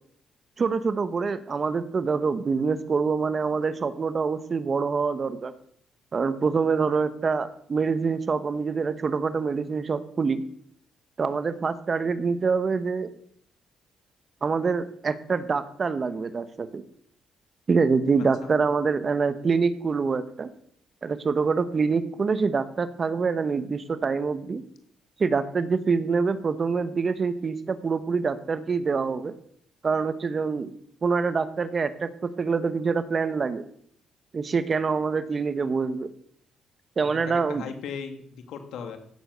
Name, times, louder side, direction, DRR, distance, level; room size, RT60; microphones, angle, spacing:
voice 1, 0.6-5.5 6.1-10.4 11.2-13.1 14.4-16.8 17.7-20.5 21.0-24.6 25.2-29.3 29.8-30.7 31.0-33.6 34.3-36.1 37.0-37.7, right 5 dB, 40° right, 12 dB, 1.0 m, -25 dB
voice 2, 37.1-39.0, left 6 dB, 80° left, 6 dB, 2.0 m, -38 dB
16.0 x 7.0 x 6.8 m, 0.67 s
cardioid pair, 90°, 0 cm